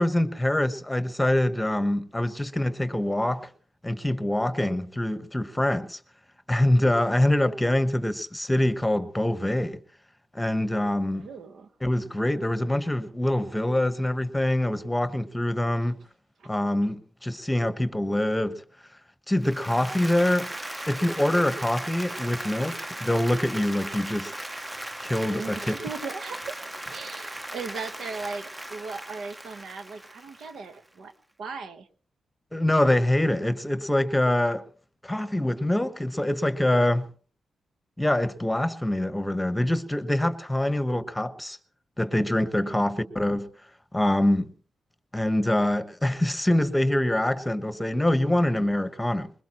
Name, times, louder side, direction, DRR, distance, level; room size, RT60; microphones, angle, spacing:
voice 1, 0.0-3.5 3.8-6.0 6.5-9.8 10.3-11.3 11.8-16.0 16.4-18.6 19.3-20.5 20.9-24.3 25.0-25.7 32.5-34.7 35.0-37.1 38.0-41.6 42.0-43.5 43.9-44.5 45.1-49.3, left 1 dB, 10° left, 1.2 m, -25 dB
voice 2, 11.1-11.7 16.4-16.5 21.4-21.7 25.4-26.6 26.9-31.1 31.4-31.9 42.6-43.0, right 4 dB, 75° right, 1.1 m, -38 dB
Applause, 19.4-30.8, right 1 dB, 15° right, 0.7 m, -37 dB
21.5 x 20.5 x 3.0 m
cardioid pair, 65°, 0 cm